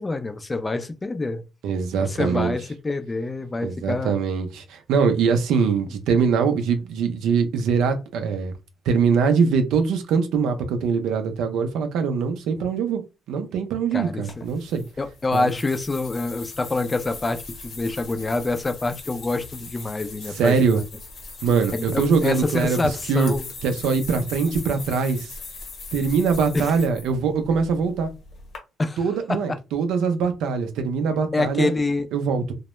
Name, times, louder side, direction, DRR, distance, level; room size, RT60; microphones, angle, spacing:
voice 1, 0.0-1.4 2.0-4.1 13.9-14.2 15.0-20.8 21.7-23.5 24.5-24.7 26.5-26.7 28.8-29.0 29.3-29.6 31.3-32.1, left 2 dB, 25° left, 0.3 m, -26 dB
voice 2, 1.6-2.5 3.6-8.5 8.9-13.0 13.3-14.8 15.3-15.5 20.4-20.8 21.4-22.8 23.1-23.3 23.6-25.3 25.9-28.1 29.0-31.7 32.1-32.5, right 5 dB, 85° right, 0.4 m, -22 dB
sound 1, 14.3-28.6, left 3 dB, 70° left, 0.9 m, -40 dB
2.1 x 2.0 x 2.9 m
cardioid pair, 90°, 0 cm